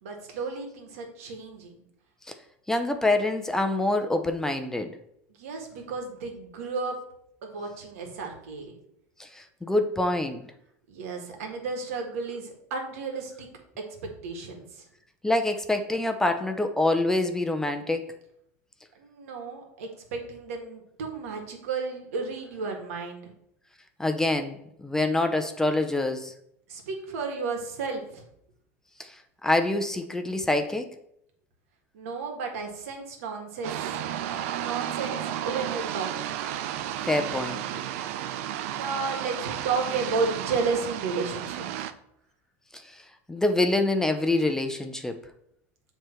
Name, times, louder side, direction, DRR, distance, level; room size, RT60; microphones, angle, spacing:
voice 1, 0.0-1.8 5.4-7.0 7.4-8.7 10.9-13.5 13.9-14.8 18.9-23.3 26.7-28.2 31.9-34.0 34.5-36.4 38.7-41.6, right 4 dB, 85° right, 2 dB, 1.6 m, -33 dB
voice 2, 2.7-4.9 9.2-10.4 15.2-18.1 24.0-26.3 29.0-29.2 29.4-30.9 37.0-37.7 42.7-43.0 43.3-45.2, left 2 dB, 5° left, 6 dB, 0.6 m, -26 dB
sound 1, 33.6-41.9, right 11 dB, 70° right, 0.5 m, -33 dB
7.5 x 3.4 x 4.4 m, 0.73 s
supercardioid pair, 120°, 8 cm